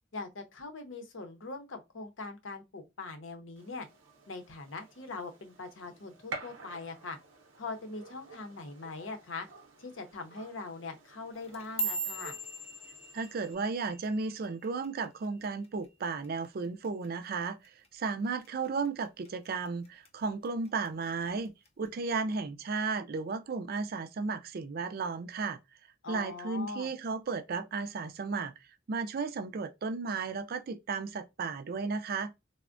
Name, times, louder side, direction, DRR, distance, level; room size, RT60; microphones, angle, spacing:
voice 1, 0.1-3.9 4.3-7.2 7.6-9.5 9.8-12.4 26.0-26.9, left 3 dB, 70° left, 0.7 m, -42 dB
Gunshot gunfire, 3.6-13.5, right 3 dB, 90° right, 0.7 m, -50 dB
sound 1, 11.3-15.8 16.0-16.5 16.8-17.3 17.6-17.9 18.4-18.9 19.2-20.1 20.4-20.9 21.7-21.8, right 2 dB, 30° left, 0.5 m, -39 dB
voice 2, 13.1-25.6 26.1-28.5 28.9-32.3, right 4 dB, 50° right, 0.4 m, -34 dB
3.4 x 2.0 x 2.5 m
head